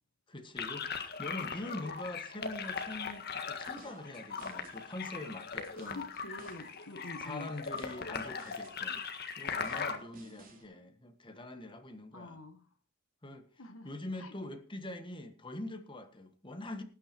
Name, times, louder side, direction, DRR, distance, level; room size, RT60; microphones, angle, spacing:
voice 1, 0.3-6.0 7.2-9.1 9.4-12.4 13.2-16.8, left 1 dB, 25° left, 1.5 m, -44 dB
sound 1, 0.6-10.0, left 5 dB, 50° left, 1.7 m, -39 dB
sound 2, 2.6-10.6, right 2 dB, 40° right, 3.8 m, -59 dB
voice 2, 5.9-7.5 12.1-12.6 13.6-13.9 14.2-14.3, left 2 dB, 65° left, 1.4 m, -46 dB
19.0 x 9.1 x 4.5 m
head